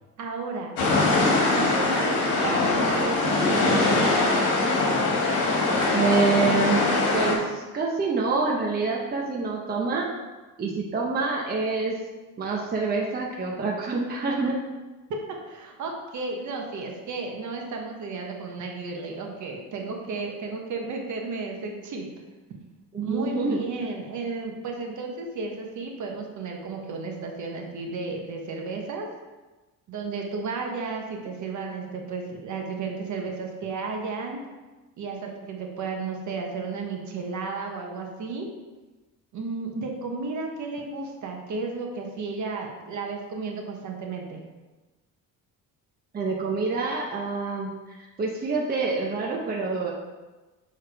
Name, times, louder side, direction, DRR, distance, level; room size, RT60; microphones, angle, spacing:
voice 1, 0.2-0.7 1.5-4.4 15.4-22.0 23.0-29.1 29.9-34.4 35.0-38.5 39.3-44.4, right 4 dB, 55° right, 1 dB, 1.1 m, -33 dB
sound 1, 0.8-7.3, left 2 dB, 75° left, 1.9 m, -22 dB
voice 2, 5.9-6.8 7.1-10.1 10.6-11.9 12.4-14.6 22.9-23.6 46.1-49.9, right 4 dB, 25° right, -2 dB, 0.7 m, -26 dB
6.8 x 3.6 x 4.6 m, 1.2 s
cardioid pair, 150°, 35 cm